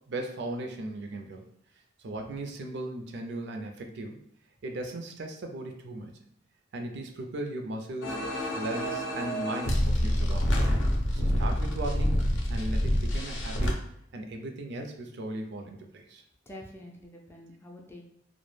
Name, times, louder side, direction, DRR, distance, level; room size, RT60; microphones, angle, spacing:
voice 1, 0.1-1.5 2.0-4.2 4.6-6.2 6.7-8.2 8.5-10.6 11.1-12.2 12.5-13.8 14.1-16.2, right 2 dB, 60° right, 3 dB, 0.4 m, -37 dB
sound 1, 8.0-13.7, equal, 70° left, 0.5 m, -27 dB
voice 2, 16.5-18.0, left 1 dB, 10° left, 0 dB, 0.3 m, -46 dB
2.2 x 2.0 x 3.1 m, 0.75 s
head